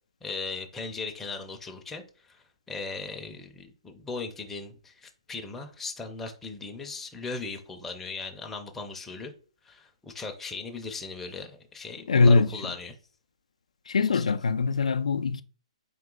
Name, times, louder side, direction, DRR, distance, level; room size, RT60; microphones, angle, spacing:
voice 1, 0.2-9.3 9.6-13.0 14.1-14.2, left 4 dB, 10° left, 0.5 m, -38 dB
voice 2, 12.1-12.5 13.9-15.4, left 4 dB, 85° left, 0.3 m, -22 dB
3.9 x 2.7 x 3.7 m
hypercardioid pair, 150°, 3 cm